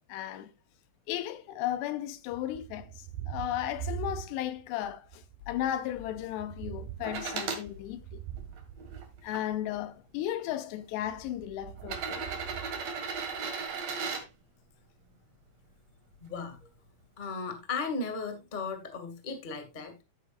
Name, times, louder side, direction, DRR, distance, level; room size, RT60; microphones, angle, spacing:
voice 1, 0.1-0.5 1.1-2.9 3.3-8.2 9.2-12.3, left 12 dB, 85° left, 2.9 m, -35 dB
Thunder, 2.3-4.7 5.0-9.9 10.9-13.6, right 10 dB, 75° right, 2.2 m, -43 dB
sound 1, 7.0-7.6 8.4-9.4 10.4-10.5 11.8-14.2 16.1-16.2, right 5 dB, 50° right, 2.4 m, -36 dB
voice 2, 16.2-16.6 17.2-20.0, left 4 dB, 55° left, 0.5 m, -36 dB
14.5 x 8.6 x 2.4 m
omnidirectional pair, 4.9 m